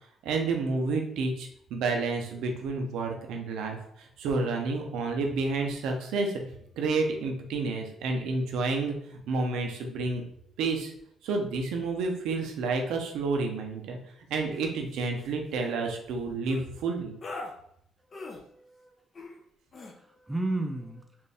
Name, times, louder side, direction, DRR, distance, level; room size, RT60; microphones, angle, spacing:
voice 1, 0.2-3.8 4.2-6.3 6.8-10.2 10.6-10.9 11.2-14.0 14.3-17.1, right 3 dB, 90° right, 3 dB, 0.7 m, -30 dB
sound 1, 14.5-14.7 15.0-15.3 16.4-16.6 17.2-17.5 18.1-18.4 19.1-19.4 19.7-19.9, left 2 dB, 40° left, 0.7 m, -40 dB
voice 2, 18.1-18.9 19.9-21.1, right 2 dB, 15° right, 4 dB, 0.6 m, -34 dB
4.3 x 2.6 x 3.4 m, 0.70 s
cardioid pair, 90°, 0 cm